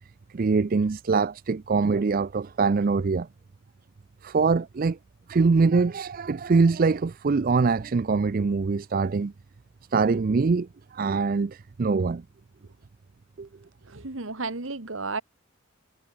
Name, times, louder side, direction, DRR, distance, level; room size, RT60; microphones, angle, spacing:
voice 1, 0.3-3.3 4.2-5.0 5.3-9.3 9.9-10.7 10.9-12.2 13.4-13.5, right 4 dB, 40° right, 0.4 m, -23 dB
voice 2, 13.9-15.2, right 3 dB, 65° right, 1.7 m, -33 dB
head